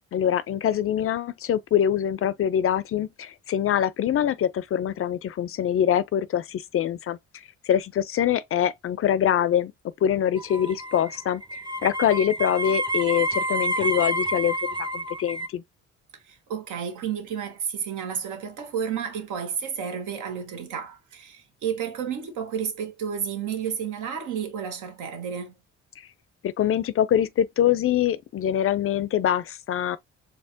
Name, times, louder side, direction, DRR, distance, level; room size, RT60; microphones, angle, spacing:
voice 1, 0.1-7.2 7.6-9.7 10.0-11.4 11.8-15.6 26.4-30.0, left 10 dB, 50° left, 0.4 m, -24 dB
sound 1, 10.4-15.5, right 1 dB, 15° right, 0.6 m, -29 dB
voice 2, 16.2-25.5, right 7 dB, 80° right, 1.3 m, -31 dB
4.3 x 3.2 x 2.6 m
cardioid pair, 90°, 30 cm